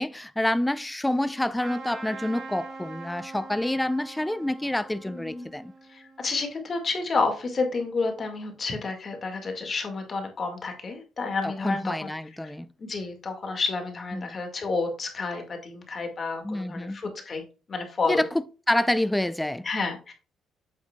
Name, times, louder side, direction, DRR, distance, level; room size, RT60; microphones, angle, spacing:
voice 1, 0.0-5.7 11.4-12.7 14.1-14.4 16.4-17.0 18.1-19.7, left 1 dB, 5° left, 0.5 m, -28 dB
Trumpet, 1.6-6.6, right 3 dB, 40° right, 3.7 m, -43 dB
voice 2, 5.0-5.5 5.9-12.1 12.4-12.5 12.8-18.2 19.6-20.1, left 4 dB, 35° left, 1.8 m, -30 dB
8.0 x 7.9 x 2.2 m
cardioid pair, 125°, 0 cm